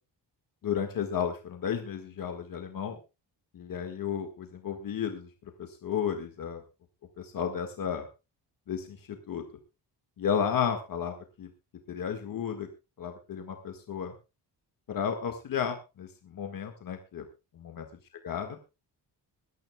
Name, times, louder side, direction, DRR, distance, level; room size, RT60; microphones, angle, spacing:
voice 1, 0.6-3.0 3.5-5.3 5.6-6.6 7.2-8.1 8.7-9.4 10.2-11.5 11.9-12.7 13.0-14.1 14.9-17.3 17.5-17.9 18.2-18.6, left 8 dB, 50° left, 5 dB, 1.6 m, -33 dB
22.5 x 12.5 x 2.2 m, 0.28 s
cardioid pair, 165°, 43 cm